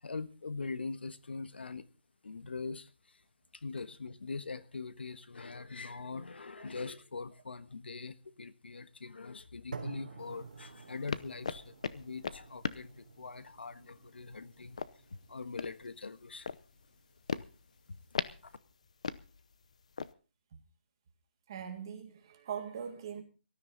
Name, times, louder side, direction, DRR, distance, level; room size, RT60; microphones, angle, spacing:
voice 1, 0.0-1.8 2.2-3.2 3.5-14.8 15.1-16.5 17.9-18.0 18.4-18.5, left 4 dB, 70° left, 1.5 m, -42 dB
sound 1, 9.7-17.7, right 4 dB, 45° right, 3.6 m, -50 dB
sound 2, 10.2-20.1, left 5 dB, 35° left, 0.7 m, -41 dB
voice 2, 21.5-23.2, right 8 dB, 20° right, 2.1 m, -41 dB
18.5 x 13.5 x 4.0 m
hypercardioid pair, 180°, 6 cm